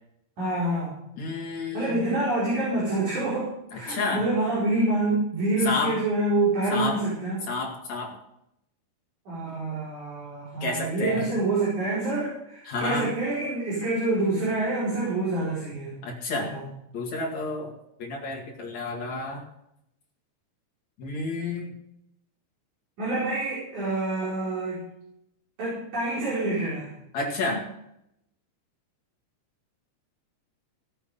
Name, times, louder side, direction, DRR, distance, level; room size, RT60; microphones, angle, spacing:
voice 1, 0.4-1.0 1.7-7.4 9.3-15.9 16.4-16.6 23.0-24.8 25.6-26.9, right 2 dB, 40° right, -8 dB, 6.0 m, -27 dB
voice 2, 1.2-2.0 3.7-4.2 5.6-6.0 6.7-7.0 7.5-8.2 10.6-11.3 12.6-13.1 16.0-16.5 16.9-17.7 18.0-19.4 21.0-21.7 27.1-27.6, left 3 dB, 50° left, -1 dB, 2.6 m, -30 dB
18.0 x 8.9 x 5.6 m, 0.79 s
omnidirectional pair, 5.6 m